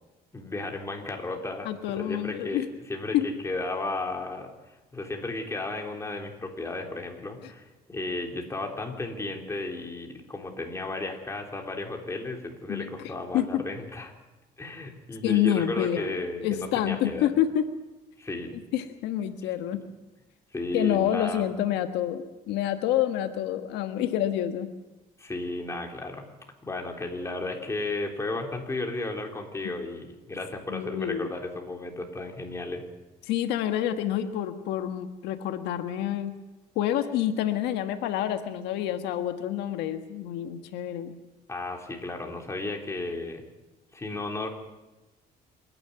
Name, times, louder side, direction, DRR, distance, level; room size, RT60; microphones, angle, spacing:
voice 1, 0.3-14.1 14.6-17.4 18.2-18.6 19.7-19.8 20.5-21.5 25.2-26.2 26.6-32.8 41.5-43.4 43.9-44.5, left 2 dB, 15° left, 2 dB, 3.7 m, -34 dB
voice 2, 1.6-2.7 3.1-3.3 12.7-12.9 13.3-13.6 15.2-16.1 16.4-17.7 18.7-19.8 20.7-24.7 30.7-31.3 33.3-36.3 36.7-41.1, left 11 dB, 90° left, 8 dB, 1.4 m, -27 dB
27.0 x 11.0 x 9.6 m, 1.1 s
cardioid pair, 110°, 17 cm